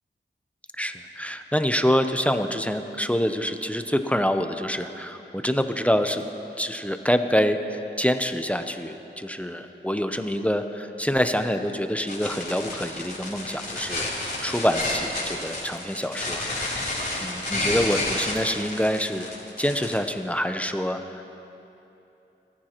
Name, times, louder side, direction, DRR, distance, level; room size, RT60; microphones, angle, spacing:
voice 1, 0.7-6.2 6.6-16.9 17.2-19.3 19.6-21.2, equal, 5° left, 7 dB, 0.7 m, -26 dB
sound 1, 12.1-20.0, left 2 dB, 50° left, 3.8 m, -30 dB
23.0 x 14.5 x 3.0 m, 2.9 s
wide cardioid pair, 65°, 20 cm